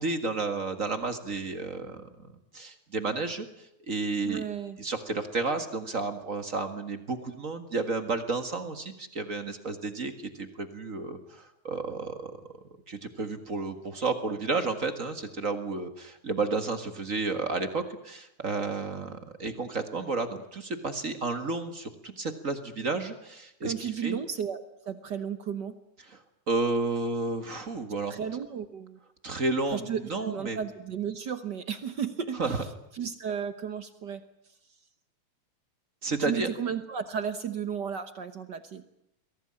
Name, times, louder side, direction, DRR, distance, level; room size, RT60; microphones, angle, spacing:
voice 1, 0.0-2.1 2.5-4.4 4.8-12.4 12.9-24.2 26.1-26.2 26.5-28.1 29.2-30.6 32.4-32.6 36.0-36.5, right 3 dB, 35° right, 9 dB, 1.6 m, -31 dB
voice 2, 4.2-4.8 23.6-25.7 28.1-29.0 29.7-32.7 32.9-34.2 36.2-38.8, right 7 dB, 55° right, 11 dB, 1.2 m, -34 dB
23.0 x 17.5 x 9.9 m, 0.80 s
omnidirectional pair, 3.4 m